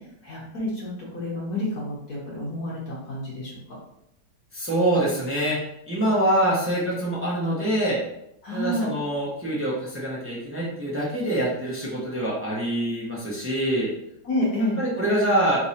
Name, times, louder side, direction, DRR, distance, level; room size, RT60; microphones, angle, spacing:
voice 1, 0.2-3.8 8.4-9.0 14.2-14.8, left 1 dB, 60° left, -5 dB, 1.3 m, -29 dB
voice 2, 4.5-5.6 5.9-8.0 8.5-13.9 14.8-15.6, right 1 dB, 20° right, -7 dB, 0.3 m, -25 dB
3.5 x 3.2 x 2.8 m, 0.80 s
omnidirectional pair, 2.1 m